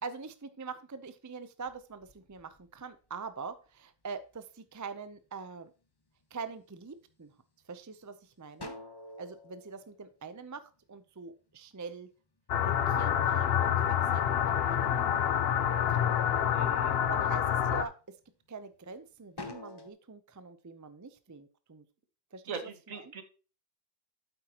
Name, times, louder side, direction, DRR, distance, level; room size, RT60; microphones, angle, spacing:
voice 1, 0.0-5.7 6.3-7.3 7.7-8.7 9.2-10.6 10.9-12.1 12.6-15.3 15.9-16.3 17.1-17.9 18.5-21.8 22.3-22.7, right 5 dB, 25° right, 11 dB, 0.4 m, -44 dB
sound 1, 1.6-3.5 4.1-4.7 5.2-5.8 6.2-7.1 7.6-7.7 8.1-11.0 11.3-13.6 14.0-15.0 15.4-16.0 16.6-16.8 17.2-18.9 19.2-19.9, left 2 dB, 20° left, 0.9 m, -48 dB
sound 2, 12.5-17.8, left 9 dB, 55° left, 0.8 m, -27 dB
voice 2, 16.5-16.9 22.5-23.2, right 5 dB, 80° right, 7 dB, 1.7 m, -41 dB
8.9 x 8.2 x 2.9 m, 0.34 s
omnidirectional pair, 1.4 m